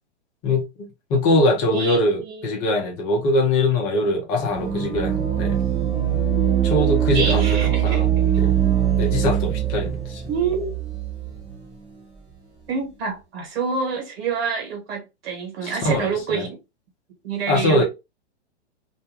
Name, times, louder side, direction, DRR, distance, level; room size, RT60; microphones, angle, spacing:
voice 1, 0.4-5.6 6.6-8.1 8.4-8.5 9.0-10.2 15.6-16.4 17.5-17.8, left 1 dB, 35° left, 0.8 m, -22 dB
voice 2, 1.7-2.6 7.1-8.1 10.3-10.7 12.7-16.6 17.2-17.8, right 5 dB, 60° right, 1.5 m, -27 dB
sound 1, 4.5-11.7, right 10 dB, 15° right, 1.0 m, -22 dB
2.7 x 2.2 x 2.8 m
hypercardioid pair, 120°, 33 cm